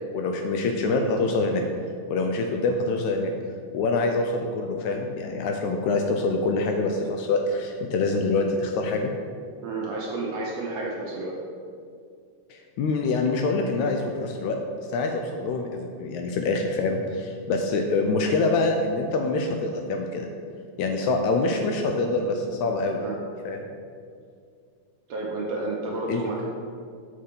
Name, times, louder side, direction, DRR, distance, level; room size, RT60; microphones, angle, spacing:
voice 1, 0.1-1.6 2.1-3.3 3.7-9.1 12.5-14.6 14.9-20.3 20.8-23.0 23.4-23.6 26.1-26.2, left 3 dB, 80° left, 3 dB, 1.8 m, -25 dB
voice 2, 9.6-11.3 23.0-23.1 25.1-26.4, right 2 dB, 70° right, -3 dB, 1.6 m, -31 dB
6.7 x 5.6 x 5.3 m, 2.2 s
omnidirectional pair, 3.7 m